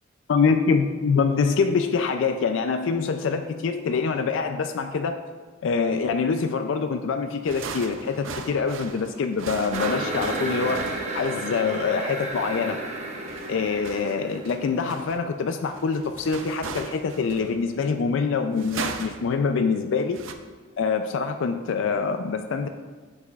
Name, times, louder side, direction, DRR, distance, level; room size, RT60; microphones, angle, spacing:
voice 1, 0.3-5.2 5.6-10.8 11.1-12.8 13.5-20.2 20.8-22.7, left 5 dB, 65° left, 7 dB, 0.4 m, -25 dB
sound 1, 7.4-11.5 13.3-17.7 18.6-19.4 20.0-20.3, right 5 dB, 70° right, 0.5 m, -37 dB
sound 2, 9.7-15.1, right 2 dB, 35° right, 1.0 m, -32 dB
8.4 x 6.9 x 2.3 m, 1.5 s
head